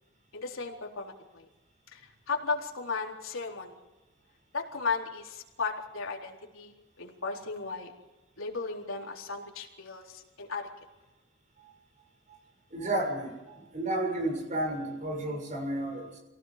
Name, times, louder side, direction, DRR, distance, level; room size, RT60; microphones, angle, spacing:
voice 1, 0.3-1.5 1.9-3.7 4.5-7.9 8.4-10.7, left 4 dB, 85° left, -1 dB, 4.0 m, -35 dB
voice 2, 12.7-16.2, right 1 dB, 40° right, 3 dB, 6.6 m, -32 dB
27.5 x 18.0 x 5.2 m, 1.1 s
head